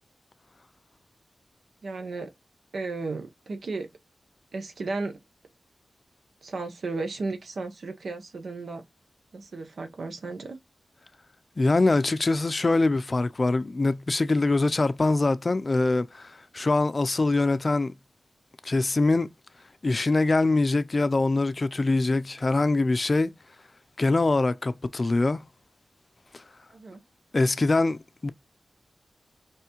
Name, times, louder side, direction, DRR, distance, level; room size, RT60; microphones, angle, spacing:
voice 1, 1.8-2.3 2.7-3.9 4.5-5.2 6.4-8.8 9.3-10.6 26.7-27.0, right 3 dB, 80° right, 0.9 m, -34 dB
voice 2, 11.6-17.9 18.6-19.3 19.8-23.3 24.0-25.4 27.3-28.3, left 2 dB, 45° left, 0.4 m, -23 dB
4.8 x 3.3 x 3.0 m
cardioid pair, 55°, 0 cm